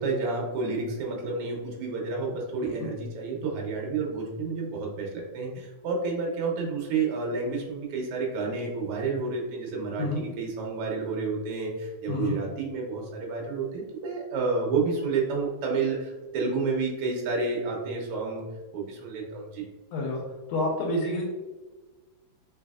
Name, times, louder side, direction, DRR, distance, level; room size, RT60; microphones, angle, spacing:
voice 1, 0.0-18.4 18.7-19.7, right 4 dB, 70° right, -1 dB, 1.4 m, -30 dB
voice 2, 19.9-20.2 20.5-21.2, left 2 dB, 80° left, -2 dB, 1.8 m, -28 dB
4.1 x 3.1 x 2.3 m, 1.2 s
omnidirectional pair, 3.3 m